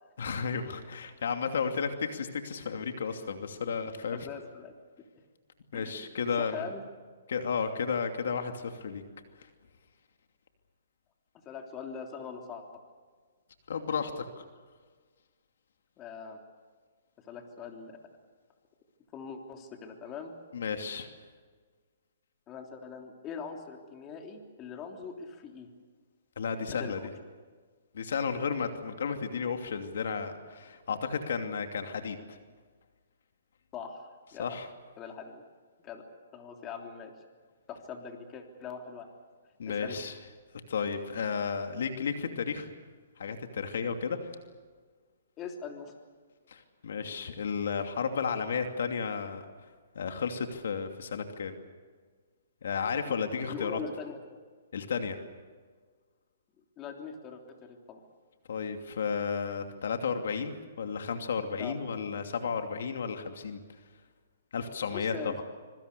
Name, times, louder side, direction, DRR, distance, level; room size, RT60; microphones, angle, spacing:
voice 1, 0.2-4.2 5.7-6.7 7.3-9.0 9.4-9.5 13.7-14.4 20.5-21.1 26.4-27.0 27.9-32.4 34.4-34.7 39.6-40.2 40.7-42.7 43.2-44.3 46.5-49.4 49.9-51.5 52.6-53.8 54.7-55.2 58.5-63.6 64.5-65.1, left 6 dB, 70° left, 6 dB, 2.7 m, -33 dB
voice 2, 4.1-4.7 5.7-6.8 11.4-12.8 16.0-16.4 17.2-18.0 19.1-20.3 22.5-25.7 26.7-27.1 33.7-34.6 35.0-35.4 35.8-36.0 36.3-37.1 37.7-39.1 39.6-40.0 45.4-45.9 53.0-53.1 53.5-54.4 56.8-58.0 61.6-61.7 64.9-65.4, left 6 dB, 25° left, 3 dB, 3.3 m, -42 dB
26.0 x 23.5 x 6.9 m, 1.5 s
hypercardioid pair, 150°, 0 cm